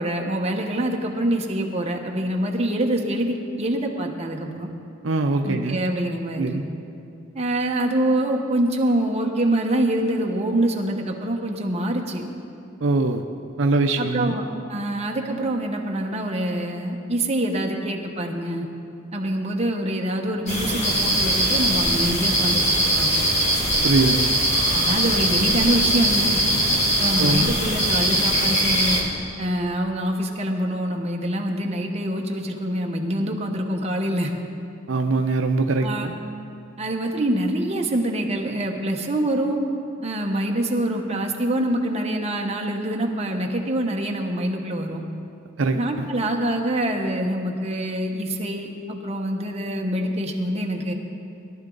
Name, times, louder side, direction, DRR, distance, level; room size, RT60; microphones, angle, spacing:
voice 1, 0.0-4.7 5.4-6.6 7.3-12.2 14.0-18.7 19.1-22.6 23.0-23.3 24.7-26.4 27.0-29.1 29.4-34.3 35.8-36.1 36.8-39.6 40.0-45.0 45.7-50.9, right 1 dB, 35° right, 1 dB, 1.1 m, -25 dB
voice 2, 5.0-5.8 6.4-6.6 12.8-13.3 13.6-14.3 23.8-24.3 27.2-27.4 34.9-36.1 45.6-46.1, right 3 dB, 75° right, 5 dB, 0.6 m, -22 dB
sound 1, 20.5-29.0, equal, 35° left, 2.1 m, -21 dB
18.0 x 11.0 x 3.9 m, 2.5 s
head